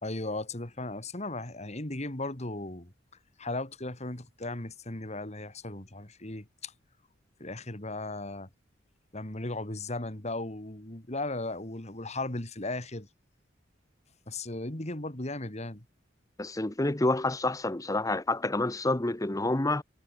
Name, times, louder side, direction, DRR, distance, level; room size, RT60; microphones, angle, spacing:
voice 1, 0.0-2.9 3.4-6.7 7.4-8.5 9.1-13.1 14.3-15.8, left 2 dB, 35° left, 2.6 m, -36 dB
voice 2, 16.4-19.8, left 2 dB, 15° left, 0.9 m, -28 dB
head